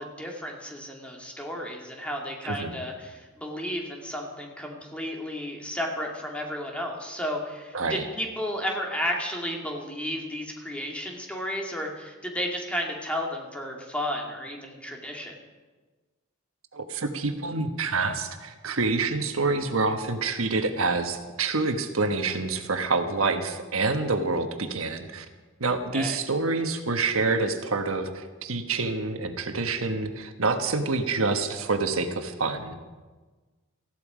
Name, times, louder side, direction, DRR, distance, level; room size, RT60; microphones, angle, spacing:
voice 1, 0.0-15.4 25.9-26.2, equal, 5° left, 0 dB, 2.3 m, -33 dB
voice 2, 7.7-8.1 16.7-25.2 25.6-32.8, right 3 dB, 80° right, 7 dB, 1.4 m, -27 dB
18.5 x 15.0 x 5.1 m, 1.3 s
head